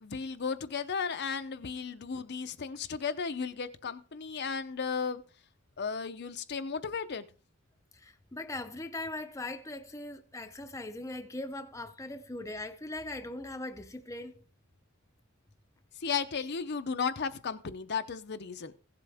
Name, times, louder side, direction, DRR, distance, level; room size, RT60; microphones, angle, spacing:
voice 1, 0.0-5.2 5.8-7.2 16.0-18.7, left 5 dB, 50° left, 0.6 m, -34 dB
voice 2, 7.9-14.4, left 2 dB, 15° left, 0.7 m, -40 dB
16.0 x 7.6 x 3.5 m
head